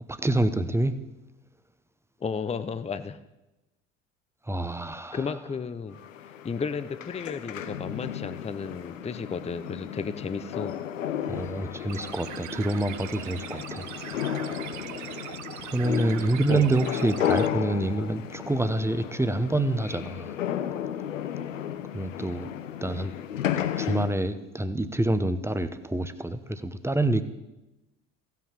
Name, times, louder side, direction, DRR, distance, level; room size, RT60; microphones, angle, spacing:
voice 1, 0.1-0.9 4.5-5.2 11.3-13.9 15.7-20.4 21.9-22.5 22.8-23.1 23.8-27.2, right 2 dB, 5° right, 11 dB, 0.9 m, -27 dB
voice 2, 2.2-3.2 5.1-6.0 6.4-10.8 16.5-16.7, left 5 dB, 15° left, 11 dB, 0.7 m, -33 dB
sound 1, 5.9-24.1, left 10 dB, 90° left, 0.6 m, -33 dB
sound 2, 11.9-17.5, right 14 dB, 50° right, 0.6 m, -40 dB
15.0 x 5.8 x 7.4 m, 0.99 s
hypercardioid pair, 60°, 37 cm